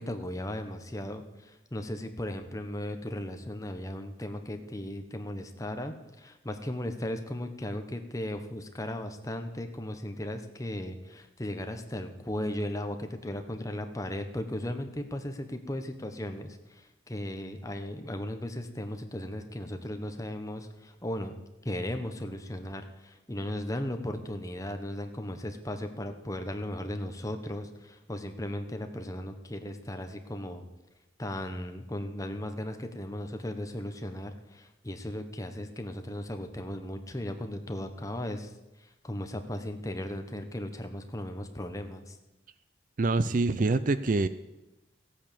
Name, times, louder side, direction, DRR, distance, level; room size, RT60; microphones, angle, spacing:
voice 1, 0.0-21.3 21.6-30.6 31.2-38.5 38.8-42.2, left 1 dB, 15° left, 6 dB, 1.1 m, -36 dB
voice 2, 43.0-44.3, right 3 dB, 40° right, 14 dB, 0.4 m, -25 dB
15.5 x 8.9 x 6.9 m, 1.0 s
head